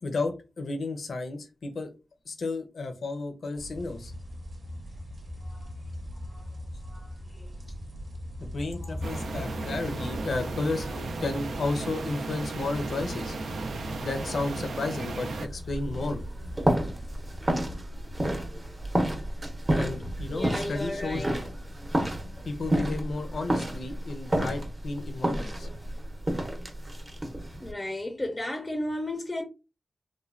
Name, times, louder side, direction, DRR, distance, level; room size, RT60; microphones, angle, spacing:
voice 1, 0.0-1.9 2.3-4.1 8.4-13.4 14.0-16.2 19.7-21.2 22.4-25.7, left 3 dB, 75° left, 0.5 m, -33 dB
sound 1, 3.6-17.8, equal, 65° right, 0.8 m, -40 dB
voice 2, 6.8-7.5 8.8-8.9 10.0-10.1 10.8-10.9 20.3-21.4 27.6-29.4, left 1 dB, 20° left, 0.5 m, -35 dB
sound 2, 9.0-15.5, right 3 dB, 85° right, 0.3 m, -35 dB
sound 3, 15.5-27.7, right 1 dB, 30° right, 0.7 m, -30 dB
3.1 x 2.1 x 2.4 m
wide cardioid pair, 90°, 0 cm